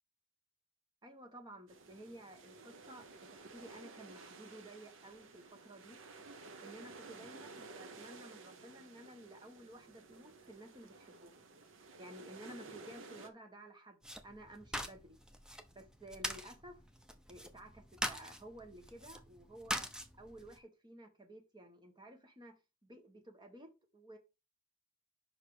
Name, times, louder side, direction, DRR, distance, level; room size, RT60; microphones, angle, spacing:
voice 1, 1.0-3.3 3.5-6.0 6.6-11.4 12.0-15.2 15.7-16.8 17.3-19.9 20.2-22.5 22.8-24.2, right 1 dB, 20° right, 1.5 m, -54 dB
sound 1, 1.7-13.3, right 3 dB, 70° right, 0.9 m, -54 dB
sound 2, 14.0-20.6, equal, 5° right, 0.7 m, -44 dB
5.5 x 4.7 x 5.0 m
head